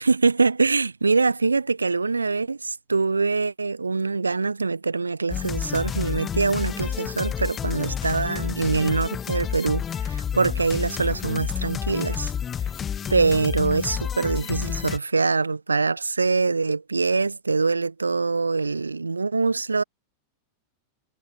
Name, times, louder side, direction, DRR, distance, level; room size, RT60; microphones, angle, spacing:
voice 1, 0.0-12.3 13.1-19.8, right 4 dB, 80° right, 1.0 m, -24 dB
sound 1, 5.3-15.0, left 8 dB, 25° left, 0.8 m, -30 dB
figure-of-eight pair, 90°, 0 cm